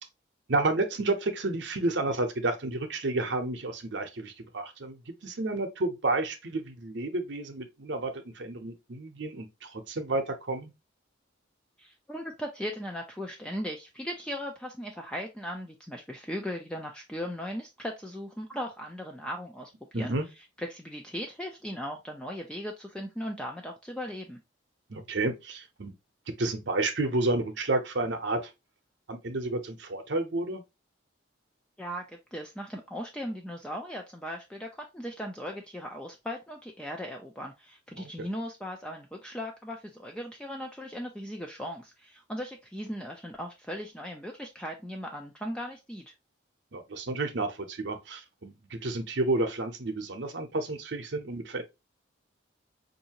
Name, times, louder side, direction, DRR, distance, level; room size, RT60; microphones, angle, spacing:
voice 1, 0.5-10.7 19.9-20.3 24.9-25.9 26.4-28.5 29.1-30.6 38.0-38.3 46.7-51.6, right 2 dB, 65° right, 0.7 m, -31 dB
voice 2, 11.8-24.4 31.8-46.1, equal, 5° left, 0.4 m, -38 dB
4.6 x 2.7 x 2.8 m
head